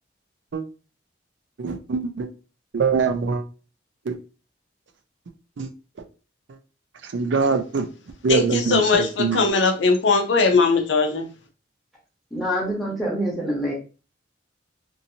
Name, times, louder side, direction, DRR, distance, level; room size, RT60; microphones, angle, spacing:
voice 1, 1.6-2.3 2.7-3.4 4.1-4.2 5.6-5.7 7.0-7.9 8.2-9.5, right 4 dB, 70° right, 0.4 m, -23 dB
voice 2, 8.3-11.3, left 4 dB, 70° left, 0.6 m, -20 dB
voice 3, 12.3-13.7, equal, ahead, 0.9 m, -26 dB
2.8 x 2.6 x 2.7 m
head